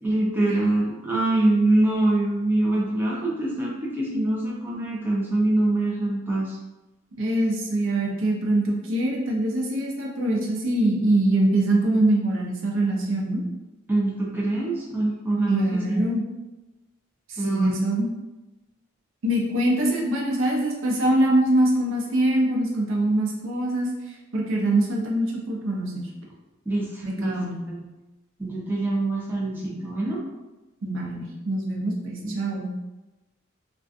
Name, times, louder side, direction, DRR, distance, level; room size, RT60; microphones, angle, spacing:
voice 1, 0.0-6.6 13.9-16.0 17.4-17.7 26.7-27.4 27.7-27.9 28.4-30.2 32.2-32.3, right 2 dB, 10° right, -5 dB, 0.4 m, -24 dB
voice 2, 7.2-13.4 15.5-16.2 17.3-18.1 19.2-23.9 24.3-26.0 27.0-27.6 30.8-32.7, right 1 dB, 70° right, -1 dB, 0.5 m, -23 dB
2.4 x 2.2 x 2.5 m, 1.1 s
head